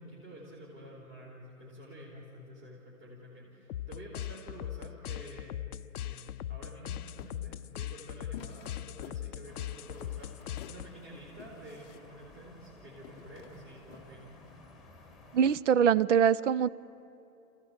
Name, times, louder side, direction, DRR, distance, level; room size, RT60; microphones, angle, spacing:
voice 1, 0.0-14.3, right 1 dB, 30° right, -5 dB, 4.2 m, -49 dB
sound 1, 3.7-11.1, left 12 dB, 80° left, 0.6 m, -40 dB
sound 2, 7.2-14.6, left 8 dB, 20° left, 0.8 m, -52 dB
sound 3, 9.5-15.6, left 2 dB, ahead, 1.7 m, -55 dB
voice 2, 15.3-16.7, right 8 dB, 55° right, 19 dB, 0.6 m, -23 dB
27.0 x 15.5 x 8.0 m, 2.8 s
hypercardioid pair, 140°, 44 cm